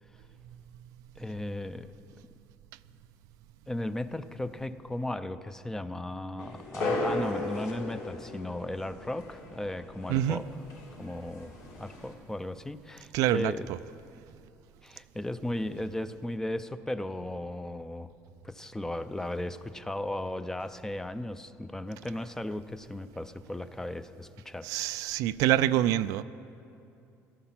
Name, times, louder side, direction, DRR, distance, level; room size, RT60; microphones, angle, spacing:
voice 1, 1.2-1.9 3.7-10.5 11.0-11.5 11.8-13.7 14.8-18.1 18.4-25.0, left 1 dB, 10° left, 12 dB, 0.5 m, -36 dB
sound 1, 6.4-12.1, left 2 dB, 80° left, 3.2 m, -36 dB
voice 2, 10.1-10.4 13.1-13.5 24.6-26.2, right 13 dB, 80° right, 14 dB, 0.4 m, -26 dB
15.0 x 12.5 x 5.8 m, 2.7 s
cardioid pair, 115°, 6 cm